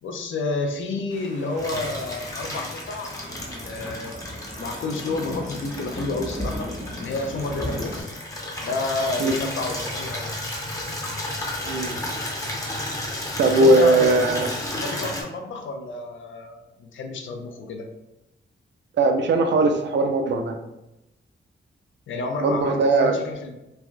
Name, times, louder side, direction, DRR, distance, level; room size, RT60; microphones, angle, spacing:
voice 1, 0.0-4.2 4.6-6.7 7.0-8.1 8.6-10.4 13.5-14.5 14.8-17.9 22.1-23.5, left 3 dB, 75° left, 4 dB, 0.5 m, -30 dB
sound 1, 1.1-8.0, equal, 40° right, 0.7 m, -36 dB
Water tap faucet / Liquid, 1.6-15.2, left 1 dB, 15° left, 0.5 m, -33 dB
voice 2, 11.6-12.0 13.4-14.5 19.0-20.6 22.4-23.2, right 2 dB, 65° right, 5 dB, 0.4 m, -19 dB
3.2 x 2.4 x 2.2 m, 0.92 s
wide cardioid pair, 130°, 20 cm